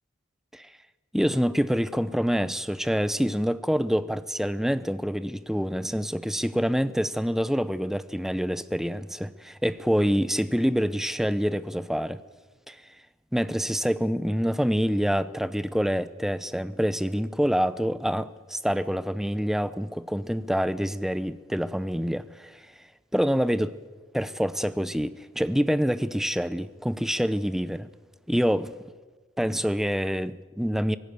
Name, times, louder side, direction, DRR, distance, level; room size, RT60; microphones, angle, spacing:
voice 1, 1.1-12.2 12.7-12.8 13.3-22.6 23.1-23.7 24.1-27.9 28.3-28.7 29.4-31.0, equal, ahead, 0.6 m, -26 dB
24.5 x 17.5 x 6.9 m
head